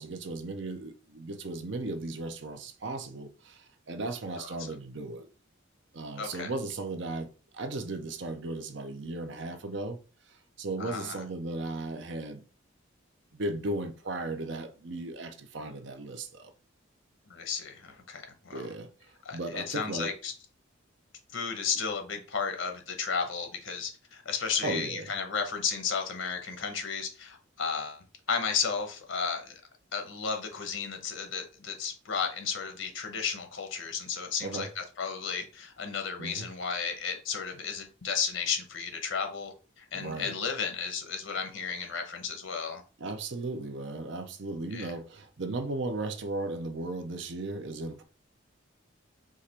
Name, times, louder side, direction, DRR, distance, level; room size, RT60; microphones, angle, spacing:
voice 1, 0.0-5.3 5.9-10.0 10.6-12.4 13.3-16.5 18.5-20.1 24.6-25.1 34.4-34.7 36.2-36.5 39.9-40.4 43.0-48.0, right 2 dB, 65° right, 0.6 m, -36 dB
voice 2, 6.2-6.5 10.8-11.2 17.3-18.7 19.2-20.3 21.3-29.5 29.9-42.8 44.7-44.9, left 6 dB, 75° left, 1.0 m, -33 dB
4.8 x 2.5 x 4.2 m
head